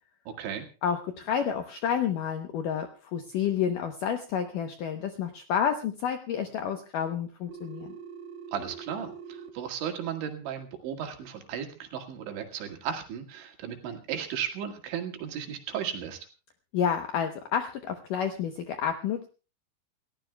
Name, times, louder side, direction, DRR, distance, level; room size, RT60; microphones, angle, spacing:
voice 1, 0.3-0.7 8.5-16.3, right 8 dB, 85° right, 4 dB, 4.4 m, -35 dB
voice 2, 0.8-7.9 16.7-19.3, left 8 dB, 80° left, 6 dB, 1.9 m, -30 dB
Telephone, 7.5-9.5, right 6 dB, 60° right, 3.0 m, -43 dB
29.0 x 14.5 x 2.3 m, 0.34 s
omnidirectional pair, 5.1 m